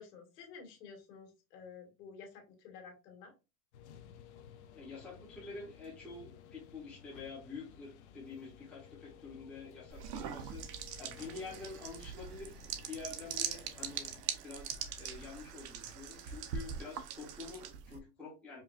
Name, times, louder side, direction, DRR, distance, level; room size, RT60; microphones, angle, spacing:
voice 1, 0.0-3.3, left 6 dB, 80° left, 2 dB, 2.0 m, -51 dB
sound 1, 3.7-14.2, left 9 dB, 45° left, 0.5 m, -56 dB
voice 2, 4.7-12.5 12.9-14.1 14.4-18.6, left 4 dB, 5° left, -6 dB, 0.8 m, -48 dB
sound 2, 9.9-18.0, right 8 dB, 75° right, 0.9 m, -42 dB
5.2 x 2.5 x 2.4 m, 0.27 s
supercardioid pair, 180°, 49 cm